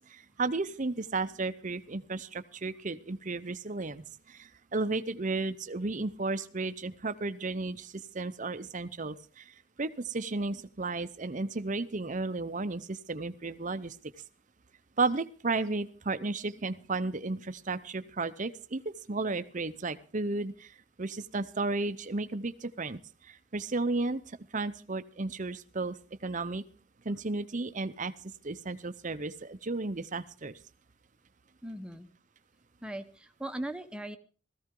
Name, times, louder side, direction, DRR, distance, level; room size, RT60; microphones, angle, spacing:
voice 1, 0.1-9.5 9.8-14.0 15.0-20.7 21.0-25.9 26.2-26.6 27.0-28.1 28.4-30.6, right 3 dB, 40° right, 12 dB, 0.7 m, -33 dB
voice 2, 31.6-32.1 32.8-34.2, right 1 dB, 5° right, 7 dB, 0.9 m, -39 dB
17.5 x 14.5 x 3.8 m, 0.38 s
head